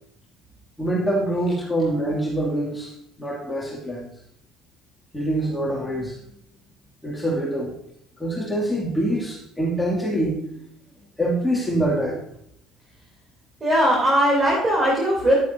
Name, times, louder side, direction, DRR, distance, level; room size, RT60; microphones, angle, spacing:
voice 1, 0.8-2.9 3.2-4.1 5.1-6.2 7.0-7.7 8.2-10.5 11.2-12.2, right 1 dB, 10° left, -3 dB, 2.5 m, -25 dB
voice 2, 13.6-15.4, equal, 30° right, -3 dB, 3.4 m, -19 dB
11.0 x 9.2 x 2.8 m, 0.72 s
hypercardioid pair, 55°, 0 cm